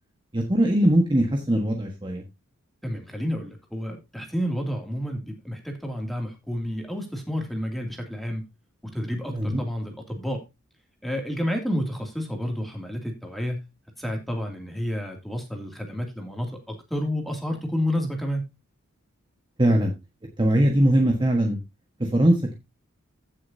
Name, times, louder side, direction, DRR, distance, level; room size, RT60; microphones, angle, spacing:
voice 1, 0.3-2.2 9.3-9.6 19.6-19.9 20.4-21.6 22.0-22.5, right 1 dB, 20° right, 1 dB, 1.4 m, -21 dB
voice 2, 2.8-8.4 8.8-10.4 11.0-13.6 14.0-18.5, equal, ahead, 2 dB, 2.5 m, -30 dB
16.0 x 6.7 x 2.7 m, 0.23 s
head